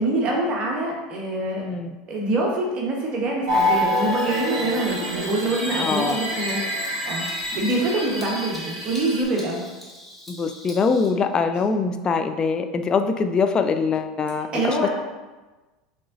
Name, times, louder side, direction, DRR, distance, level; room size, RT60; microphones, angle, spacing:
voice 1, 0.0-1.7 2.1-9.6 14.5-14.9, right 2 dB, 40° right, -2 dB, 1.2 m, -25 dB
Bird vocalization bird call bird song, 3.5-11.1, left 1 dB, 5° left, 1.4 m, -39 dB
sound 1, 3.5-9.2, left 1 dB, 55° right, 1.4 m, -27 dB
voice 2, 5.8-6.2 10.3-14.9, left 5 dB, 30° left, 8 dB, 0.3 m, -23 dB
5.5 x 3.5 x 2.7 m, 1.2 s
hypercardioid pair, 85°, 3 cm